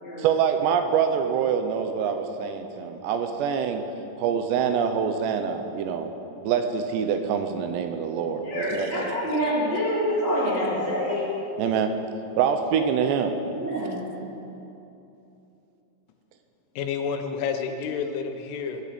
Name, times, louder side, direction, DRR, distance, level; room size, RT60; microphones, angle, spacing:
voice 1, 0.2-3.8 4.2-6.1 6.4-9.1 11.6-11.9 12.4-13.4, right 7 dB, 80° right, 7 dB, 2.7 m, -25 dB
voice 2, 8.4-11.3 13.5-14.0, equal, 5° right, -10 dB, 1.6 m, -26 dB
voice 3, 16.8-18.8, left 6 dB, 90° left, 5 dB, 3.6 m, -29 dB
20.5 x 12.0 x 5.1 m, 2.9 s
omnidirectional pair, 5.5 m